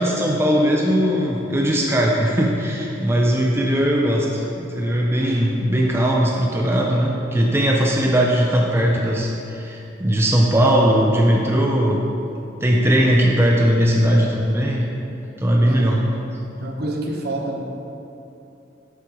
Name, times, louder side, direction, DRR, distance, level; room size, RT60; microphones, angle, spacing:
voice 1, 0.0-12.0 12.6-14.9 15.4-16.0, equal, 15° right, -2 dB, 0.5 m, -19 dB
voice 2, 15.7-16.0 16.6-17.6, right 2 dB, 60° right, 0 dB, 0.8 m, -28 dB
8.1 x 6.4 x 3.0 m, 2.8 s
head